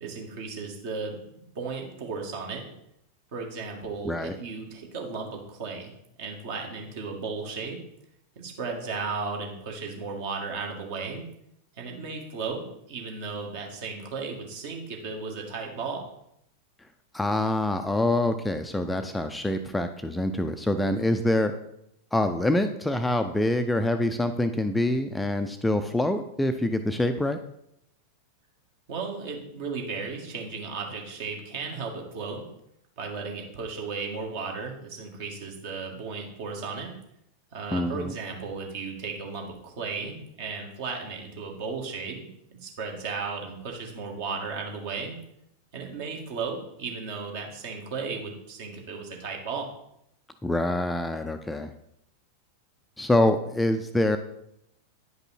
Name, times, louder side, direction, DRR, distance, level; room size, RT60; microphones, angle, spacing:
voice 1, 0.0-1.2 1.6-2.6 3.3-5.9 6.2-7.8 8.4-11.2 11.8-16.0 28.9-32.5 33.0-36.9 37.5-42.3 42.6-45.2 45.7-49.7, right 4 dB, 50° right, 1 dB, 1.8 m, -35 dB
voice 2, 4.0-4.4 17.1-21.5 22.1-27.4 37.7-38.1 50.4-51.7 53.0-54.2, left 1 dB, 5° left, 7 dB, 0.4 m, -25 dB
9.7 x 5.3 x 4.2 m, 0.77 s
figure-of-eight pair, 90°, 0 cm